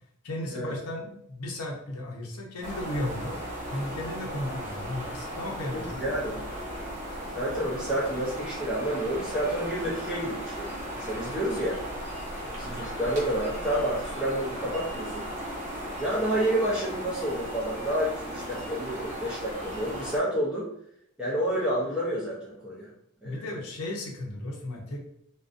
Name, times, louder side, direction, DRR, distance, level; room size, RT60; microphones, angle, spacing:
voice 1, 0.2-3.4 3.7-6.0 6.3-6.5 23.2-25.0, left 1 dB, 70° left, -1 dB, 0.6 m, -35 dB
sound 1, 2.6-20.2, equal, 35° right, 0.7 m, -36 dB
voice 2, 5.7-6.4 7.3-11.8 12.4-15.3 16.0-20.7 21.2-22.9 23.2-23.5, right 1 dB, 5° right, -8 dB, 0.5 m, -29 dB
2.4 x 2.2 x 2.4 m, 0.71 s
head